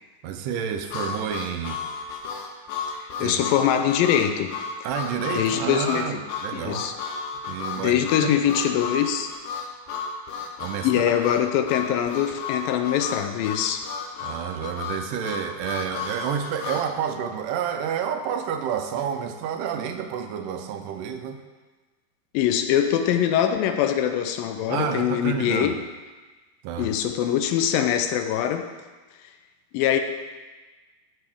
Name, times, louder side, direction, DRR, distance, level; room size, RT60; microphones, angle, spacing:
voice 1, 0.2-1.8 3.2-3.5 4.8-6.9 7.5-8.3 10.6-11.1 14.2-21.4 24.7-25.8 26.6-26.9, right 8 dB, 80° right, 6 dB, 2.2 m, -29 dB
Harmonica, 0.9-16.9, left 5 dB, 70° left, 2.2 m, -33 dB
voice 2, 3.2-4.6 5.3-6.2 6.5-6.9 7.8-9.3 10.8-13.9 22.3-25.8 26.8-28.7 29.7-30.0, left 10 dB, 85° left, 7 dB, 2.4 m, -23 dB
13.5 x 7.3 x 3.5 m, 1.3 s
omnidirectional pair, 4.1 m